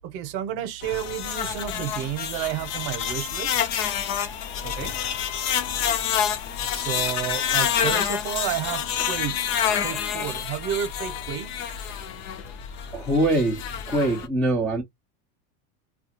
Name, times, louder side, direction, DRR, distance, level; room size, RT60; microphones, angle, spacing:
voice 1, 0.1-3.6 4.6-4.9 6.7-8.8 9.1-9.4 9.8-11.5, right 11 dB, 50° right, 0.8 m, -31 dB
sound 1, 0.8-14.3, left 9 dB, 55° left, 0.7 m, -28 dB
voice 2, 12.9-14.8, right 1 dB, ahead, 0.3 m, -23 dB
2.4 x 2.3 x 2.8 m
supercardioid pair, 140°, 48 cm